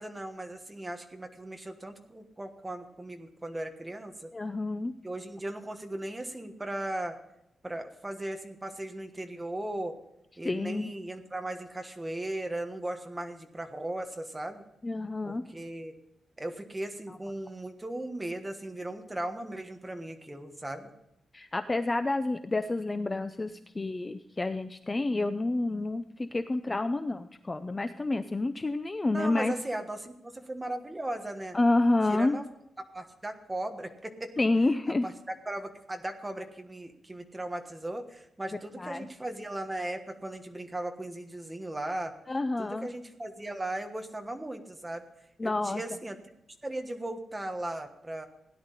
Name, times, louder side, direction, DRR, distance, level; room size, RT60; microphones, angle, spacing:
voice 1, 0.0-4.3 5.0-7.1 7.6-9.9 10.4-14.6 15.2-16.0 16.4-20.9 29.1-31.6 32.0-32.4 32.9-34.3 35.0-35.1 35.5-42.1 42.6-45.0 45.4-46.2 46.6-48.3, right 1 dB, 10° right, 5 dB, 1.3 m, -37 dB
voice 2, 4.3-4.9 10.4-10.9 14.8-15.5 17.1-17.2 21.3-29.5 31.5-32.4 34.4-35.0 38.8-39.1 42.3-42.9 45.4-45.8, left 2 dB, 20° left, 10 dB, 0.5 m, -29 dB
17.0 x 10.5 x 4.1 m, 0.85 s
wide cardioid pair, 160°, 0 cm